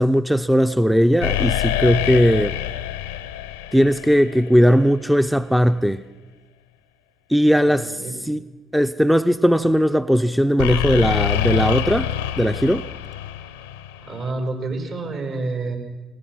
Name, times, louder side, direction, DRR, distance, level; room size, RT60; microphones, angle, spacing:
voice 1, 0.0-2.6 3.7-6.1 7.3-7.9 8.3-8.4 8.7-12.1 12.4-12.8, equal, 5° right, 0.6 m, -18 dB
sound 1, 1.2-4.9 10.6-14.3, left 11 dB, 85° left, 0.7 m, -26 dB
voice 2, 7.6-8.2 14.0-15.8, right 3 dB, 60° right, 5.2 m, -29 dB
23.0 x 19.5 x 6.1 m
hypercardioid pair, 55°, 0 cm